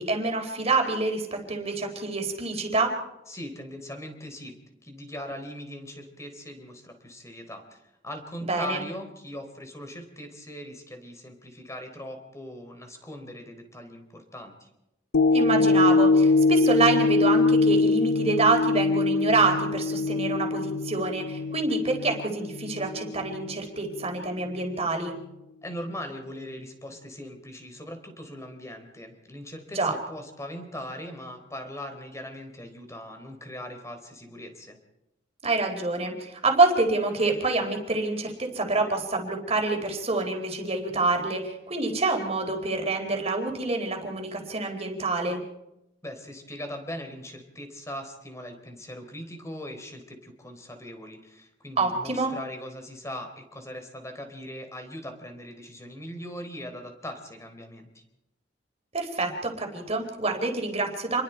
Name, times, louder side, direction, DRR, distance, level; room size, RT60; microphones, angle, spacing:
voice 1, 0.0-2.9 8.4-8.8 15.3-25.1 29.7-29.9 35.4-45.4 51.8-52.3 58.9-61.2, right 3 dB, 35° right, 4 dB, 4.2 m, -26 dB
voice 2, 3.3-4.6 4.8-14.7 25.6-34.8 46.0-58.0, left 1 dB, 15° left, 5 dB, 3.9 m, -40 dB
sound 1, 15.1-23.5 24.0-24.1, left 3 dB, 60° left, 0.7 m, -23 dB
29.0 x 22.0 x 4.6 m, 0.89 s
head